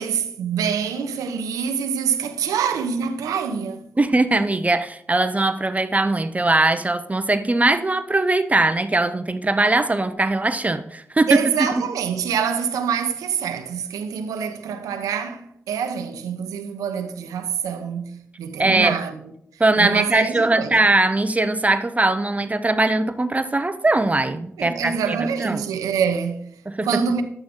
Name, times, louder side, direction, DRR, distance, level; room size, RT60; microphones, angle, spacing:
voice 1, 0.0-3.9 11.3-19.2 19.5-20.8 24.6-27.2, right 7 dB, 90° right, 1.0 m, -26 dB
voice 2, 4.0-11.9 18.6-19.0 19.6-25.6 26.7-27.0, right 2 dB, 25° right, 0.9 m, -20 dB
11.0 x 8.7 x 3.8 m
supercardioid pair, 45°, 6 cm